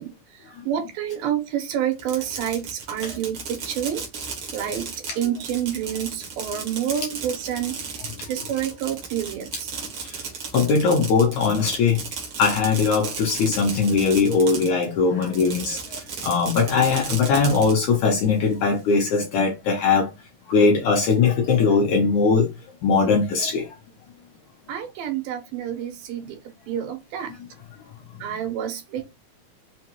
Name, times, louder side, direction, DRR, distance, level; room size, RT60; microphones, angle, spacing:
voice 1, 0.0-4.0 4.5-9.7 24.7-26.4 26.7-27.3 28.2-29.0, right 10 dB, 85° right, 2.6 m, -29 dB
Fireworks, 1.9-14.9 15.2-17.7, right 5 dB, 70° right, 1.2 m, -35 dB
voice 2, 10.5-12.0 12.4-15.8 16.2-20.1 20.5-22.5 22.8-23.6, left 5 dB, 75° left, 1.8 m, -20 dB
5.6 x 2.2 x 2.9 m
omnidirectional pair, 4.0 m